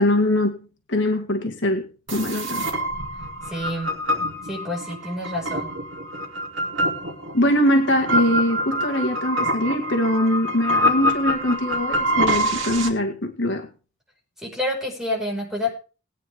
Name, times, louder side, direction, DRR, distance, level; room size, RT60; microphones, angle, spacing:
voice 1, 0.0-2.7 7.3-13.7, left 1 dB, 65° left, 3 dB, 1.9 m, -22 dB
sound 1, 2.1-12.9, equal, 70° right, 2.6 m, -25 dB
voice 2, 3.5-3.9 4.5-5.7 14.4-15.7, left 1 dB, ahead, -2 dB, 5.3 m, -28 dB
20.0 x 9.4 x 3.6 m, 0.35 s
head